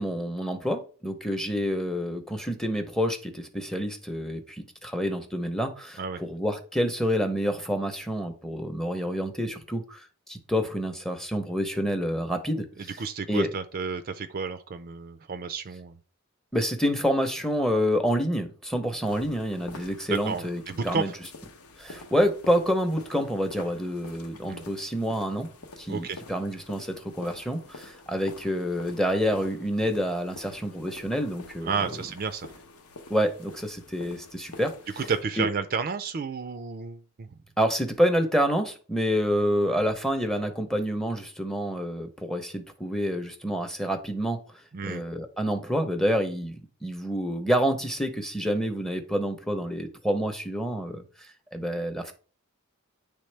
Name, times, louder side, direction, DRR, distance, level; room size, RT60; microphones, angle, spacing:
voice 1, 0.0-13.0 13.3-13.5 16.5-21.1 21.8-25.5 25.8-31.7 33.1-34.7 35.4-35.5 37.6-44.4 44.8-46.6 46.8-51.0 51.5-52.1, equal, ahead, 7 dB, 0.7 m, -28 dB
voice 2, 13.0-16.0 20.1-21.1 24.5-24.6 25.9-26.2 31.6-32.5 35.0-37.4 44.7-45.0, right 5 dB, 40° right, 8 dB, 0.4 m, -31 dB
sound 1, 19.0-35.2, left 3 dB, 85° left, 0.9 m, -47 dB
9.6 x 3.4 x 3.3 m, 0.40 s
head